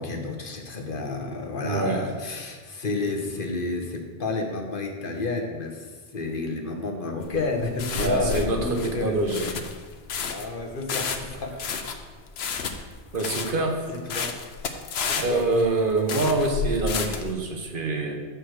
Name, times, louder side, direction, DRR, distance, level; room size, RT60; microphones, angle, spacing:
voice 1, 0.0-9.4 10.3-11.6 13.9-14.3 15.0-15.5, left 3 dB, 60° left, 2 dB, 1.2 m, -30 dB
voice 2, 1.6-2.0 8.0-9.5 13.1-13.9 15.2-18.2, right 2 dB, 60° right, 2 dB, 1.1 m, -25 dB
sound 1, 7.2-17.3, left 5 dB, 80° left, 0.9 m, -31 dB
7.9 x 4.6 x 6.4 m, 1.4 s
omnidirectional pair, 1.0 m